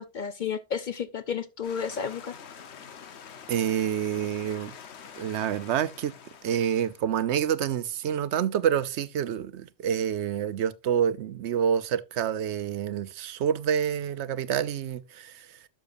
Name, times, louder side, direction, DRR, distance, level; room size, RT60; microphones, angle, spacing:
voice 1, 0.0-2.3, left 7 dB, 55° left, 0.6 m, -32 dB
sound 1, 1.6-7.0, left 7 dB, 75° left, 1.2 m, -46 dB
voice 2, 3.5-4.7 5.2-6.1 6.4-15.5, right 9 dB, 85° right, 0.9 m, -27 dB
12.0 x 6.4 x 2.6 m
omnidirectional pair, 1.1 m